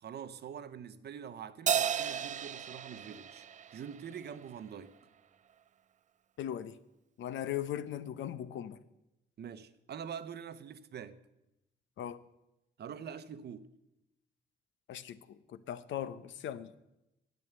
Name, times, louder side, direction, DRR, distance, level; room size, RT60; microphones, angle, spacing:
voice 1, 0.0-3.5 3.7-4.9 9.4-11.2 12.8-13.7, right 8 dB, 55° right, 0.9 m, -45 dB
Crash cymbal, 1.7-4.4, right 9 dB, 40° right, 0.4 m, -34 dB
voice 2, 6.4-6.7 7.2-8.8 12.0-12.2 14.9-16.7, left 10 dB, 70° left, 0.8 m, -39 dB
11.0 x 8.6 x 8.2 m
cardioid pair, 90°, 20 cm